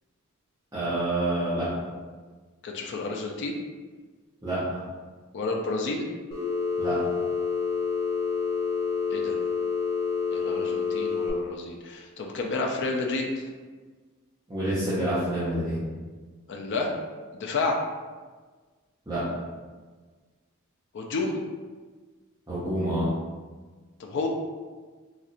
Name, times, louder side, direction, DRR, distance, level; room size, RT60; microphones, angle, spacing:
voice 1, 0.7-1.7 4.4-4.6 6.8-7.0 14.5-15.8 19.1-19.2 22.5-23.1, right 1 dB, 15° right, -13 dB, 0.8 m, -27 dB
voice 2, 2.6-3.6 5.3-6.1 9.1-9.4 10.3-13.3 16.5-16.9 17.3-17.8 20.9-21.4 24.0-24.3, left 3 dB, 55° left, 1 dB, 0.4 m, -30 dB
Telephone, 6.3-11.3, left 5 dB, 20° left, 1.1 m, -28 dB
4.2 x 2.4 x 2.5 m, 1.4 s
head